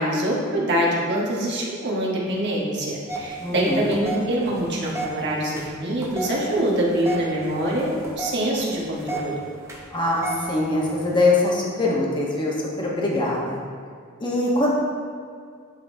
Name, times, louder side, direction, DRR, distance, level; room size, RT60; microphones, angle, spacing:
voice 1, 0.0-9.4, right 1 dB, 55° right, -4 dB, 1.3 m, -24 dB
sound 1, 3.1-11.3, right 3 dB, 15° right, 0.8 m, -35 dB
voice 2, 3.4-4.0 9.9-13.6 14.2-14.7, left 2 dB, 25° left, -3 dB, 1.0 m, -23 dB
11.0 x 3.7 x 2.7 m, 2.1 s
head